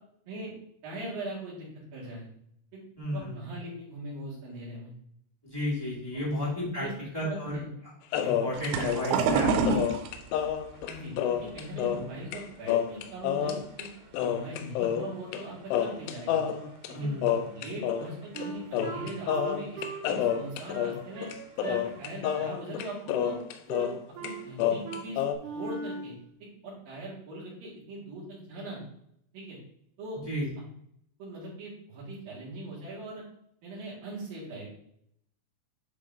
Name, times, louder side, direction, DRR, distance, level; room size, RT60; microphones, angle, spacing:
voice 1, 0.8-2.3 2.7-2.8 3.1-4.9 6.1-6.2 6.8-6.9 7.2-7.7 10.9-13.9 14.1-16.4 16.9-17.2 17.5-21.3 21.6-23.4 23.8-23.9 24.2-25.2 25.5-26.2 26.6-28.8 29.3-29.6 30.0-30.2 31.2-33.2 33.6-34.7, right 1 dB, 55° right, -7 dB, 3.7 m, -40 dB
voice 2, 3.0-3.4 5.4-6.8 7.1-7.6 8.2-9.8 16.9-17.3 30.2-30.5, equal, 10° left, -7 dB, 1.4 m, -32 dB
sound 1, 8.1-12.1 12.3-12.4 12.7-13.9 14.1-15.4 15.7-18.1 18.4-18.5 18.7-24.0 24.2-25.3, left 9 dB, 80° left, 2.6 m, -29 dB
sound 2, 8.5-13.7 14.0-14.9 15.4-15.7 16.0-16.1 17.3-17.4 17.9-18.0 18.6-18.7 18.9-19.2 20.4-20.6 21.2-21.3 21.7-22.1, right 4 dB, 90° right, 3.1 m, -30 dB
Wind instrument woodwind instrument, 18.3-21.8 22.2-22.5 22.8-23.4 23.7-24.5 24.8-25.1 25.4-26.1, right 4 dB, 75° right, 3.2 m, -39 dB
10.0 x 3.4 x 3.8 m, 0.72 s
omnidirectional pair, 5.1 m